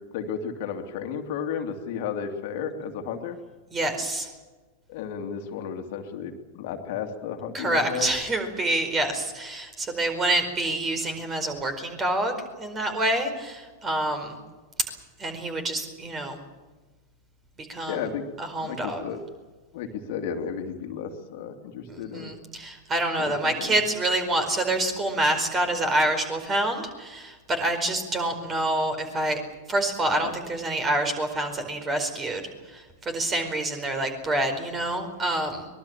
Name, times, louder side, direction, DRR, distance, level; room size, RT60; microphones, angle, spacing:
voice 1, 0.1-3.4 4.9-8.1 17.9-18.3 18.6-19.2 19.7-22.3 23.2-23.7 30.1-30.3, left 7 dB, 50° left, 4 dB, 2.6 m, -33 dB
voice 2, 3.7-4.3 7.5-12.3 12.6-14.4 15.2-16.4 17.6-18.0 18.4-19.0 21.9-29.4 29.7-32.4 32.7-35.7, right 1 dB, 20° right, 7 dB, 4.8 m, -27 dB
24.5 x 21.0 x 7.4 m, 1.3 s
figure-of-eight pair, 90°, 0 cm